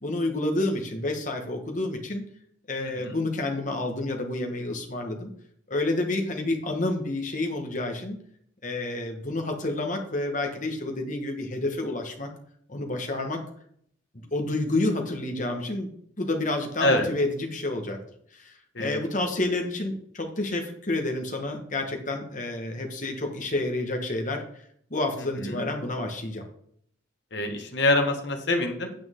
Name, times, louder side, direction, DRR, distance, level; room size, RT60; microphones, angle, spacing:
voice 1, 0.0-2.2 2.7-5.3 5.7-8.2 8.6-12.3 12.7-13.4 14.3-15.9 16.2-18.0 18.3-24.4 24.9-26.4, left 2 dB, 40° left, 3 dB, 1.5 m, -29 dB
voice 2, 2.8-3.2 16.8-17.1 18.7-19.0 25.4-25.6 27.3-28.9, left 2 dB, 60° left, 3 dB, 1.7 m, -25 dB
8.8 x 8.8 x 3.8 m, 0.67 s
head